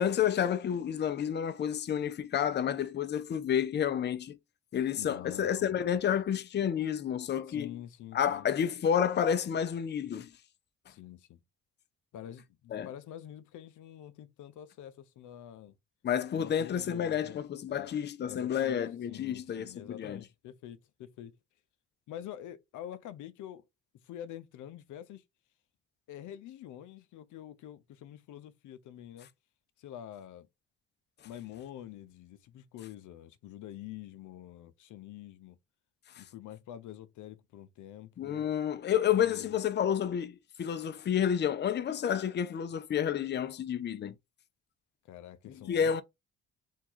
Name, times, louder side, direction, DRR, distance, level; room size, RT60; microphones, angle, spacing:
voice 1, 0.0-4.4 4.7-7.8 8.1-10.3 12.7-12.9 16.0-20.2 36.1-36.2 38.2-44.1 45.7-46.0, left 9 dB, 35° left, 0.5 m, -30 dB
voice 2, 5.0-5.7 7.5-8.5 10.9-11.4 12.1-15.8 16.4-17.9 18.2-18.8 19.1-21.3 22.1-23.6 24.0-25.2 26.1-29.3 29.8-30.5 31.2-35.6 36.2-38.4 39.1-39.6 45.0-46.0, left 11 dB, 80° left, 0.6 m, -46 dB
3.6 x 2.3 x 4.4 m
cardioid pair, 90°, 30 cm